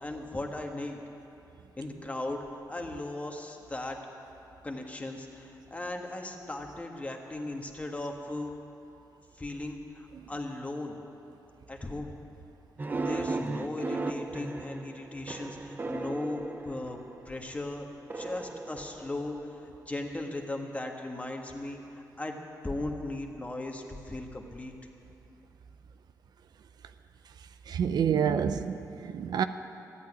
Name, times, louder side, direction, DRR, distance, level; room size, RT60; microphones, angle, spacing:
voice 1, 0.0-1.0 1.8-4.0 4.6-8.5 9.4-11.0 11.7-12.1 13.0-17.0 17.2-17.8 18.1-22.4 22.6-24.7, left 2 dB, 20° left, 2 dB, 1.6 m, -37 dB
sound 1, 12.8-17.3 18.1-19.6, right 3 dB, 25° right, 0.7 m, -36 dB
voice 2, 27.7-29.4, right 8 dB, 75° right, 10 dB, 0.5 m, -28 dB
14.0 x 8.8 x 9.8 m, 2.9 s
cardioid pair, 95°, 7 cm